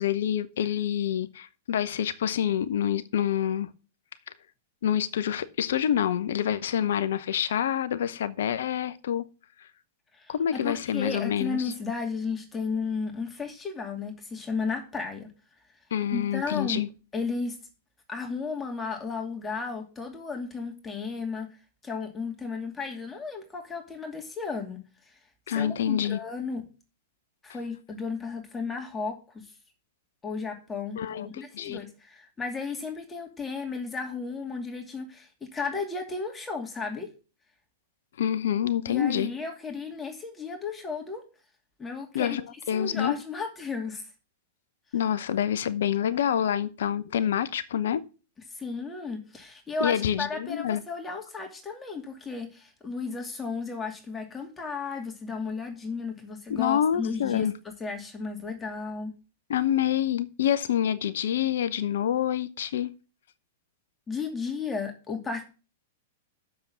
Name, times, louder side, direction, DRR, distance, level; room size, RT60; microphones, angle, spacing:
voice 1, 0.0-3.7 4.8-9.3 10.3-11.7 15.9-16.9 25.5-26.2 31.0-31.8 38.2-39.3 42.1-42.4 42.7-43.1 44.9-48.1 49.8-50.8 56.5-57.5 59.5-62.9, left 9 dB, 65° left, 0.8 m, -27 dB
voice 2, 10.1-15.3 16.1-16.8 17.1-17.6 18.1-21.6 21.8-24.8 25.5-26.6 27.4-29.5 30.2-37.1 38.9-41.2 41.8-42.4 42.7-44.0 48.5-59.1 64.1-65.4, left 4 dB, 15° left, 2.5 m, -34 dB
7.7 x 7.0 x 7.5 m
hypercardioid pair, 105°, 0 cm